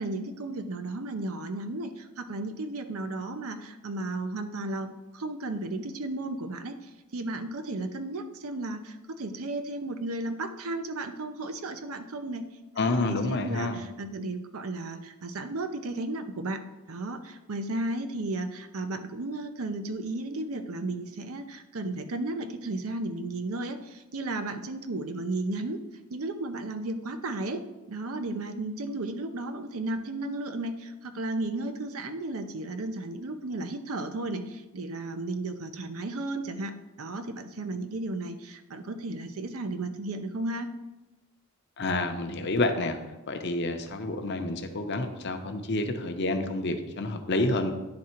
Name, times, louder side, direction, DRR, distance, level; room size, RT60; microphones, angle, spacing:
voice 1, 0.0-12.4 12.8-25.8 26.1-40.7, right 2 dB, 70° right, 8 dB, 0.6 m, -34 dB
voice 2, 12.8-13.8 41.8-43.0 43.3-47.7, left 2 dB, 50° left, 6 dB, 0.7 m, -28 dB
10.5 x 3.7 x 4.4 m, 1.0 s
head